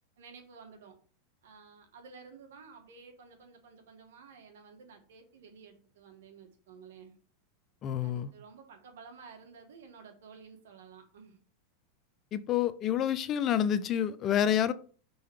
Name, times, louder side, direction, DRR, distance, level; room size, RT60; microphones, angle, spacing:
voice 1, 0.2-1.0 1.4-7.2 8.0-11.4, right 5 dB, 75° right, 1.7 m, -53 dB
voice 2, 7.8-8.3 12.3-14.7, left 10 dB, 40° left, 0.5 m, -28 dB
5.6 x 3.9 x 4.7 m
hypercardioid pair, 100°, 0 cm